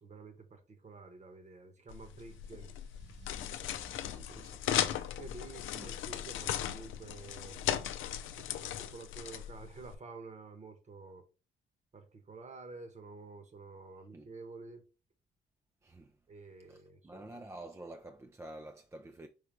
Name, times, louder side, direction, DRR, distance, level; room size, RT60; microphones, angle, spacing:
voice 1, 0.0-2.7 5.2-7.8 8.4-11.3 11.9-14.9 16.3-17.4, right 3 dB, 35° right, 1.1 m, -50 dB
sound 1, 1.9-10.0, left 11 dB, 80° left, 0.5 m, -37 dB
Car / Engine starting / Accelerating revving vroom, 2.2-8.7, left 1 dB, 70° right, 2.7 m, -57 dB
voice 2, 3.8-5.0 5.7-5.9 14.1-14.3 15.8-16.2 16.7-19.3, right 2 dB, 15° right, 0.4 m, -49 dB
5.1 x 3.2 x 3.1 m
cardioid pair, 90°, 20 cm